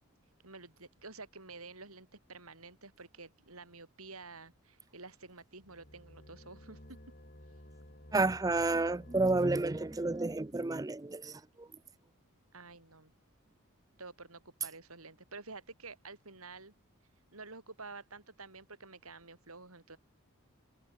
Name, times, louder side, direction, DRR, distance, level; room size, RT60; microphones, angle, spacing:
voice 1, 0.4-6.8 12.5-13.1 14.0-16.7 17.3-20.0, right 3 dB, 90° right, 8.0 m, -50 dB
sound 1, 5.6-10.7, left 1 dB, 45° left, 5.9 m, -54 dB
voice 2, 8.1-11.7, right 2 dB, 15° right, 0.5 m, -30 dB
head